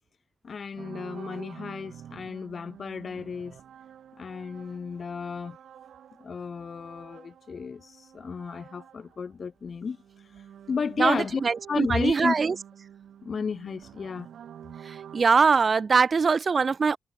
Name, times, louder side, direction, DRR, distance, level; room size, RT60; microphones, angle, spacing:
voice 1, 0.4-3.6 4.2-5.6 6.2-11.4 11.7-12.3 13.2-14.3, left 5 dB, 60° left, 0.9 m, -33 dB
sound 1, 0.8-9.3 9.6-15.2, right 9 dB, 85° right, 5.4 m, -48 dB
voice 2, 11.0-12.6 14.9-17.0, right 5 dB, 55° right, 0.7 m, -22 dB
cardioid pair, 55°, 0 cm